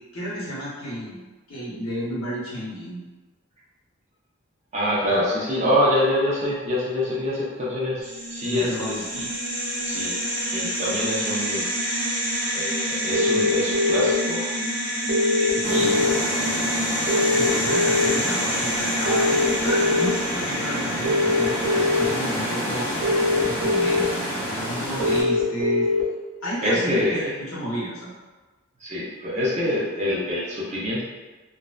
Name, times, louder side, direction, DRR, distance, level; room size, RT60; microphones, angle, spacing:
voice 1, 0.1-1.2 1.5-3.0 8.4-8.9 15.5-15.9 17.3-23.0 23.4-25.9 26.4-28.1, equal, 80° left, -7 dB, 0.9 m, -31 dB
voice 2, 4.7-9.2 9.8-10.2 10.5-11.7 12.5-14.5 15.2-16.1 26.6-27.3 28.8-31.0, left 1 dB, 35° right, -6 dB, 0.5 m, -25 dB
sound 1, 8.0-24.6, equal, 15° right, 1.3 m, -28 dB
sound 2, 13.1-14.1 15.1-16.1 17.1-18.1 19.1-20.1 21.0-22.1 23.0-24.0 25.0-26.0, left 2 dB, 90° right, 0.6 m, -22 dB
sound 3, 15.6-25.2, equal, 10° left, 0.6 m, -30 dB
2.6 x 2.1 x 2.3 m, 1.2 s
head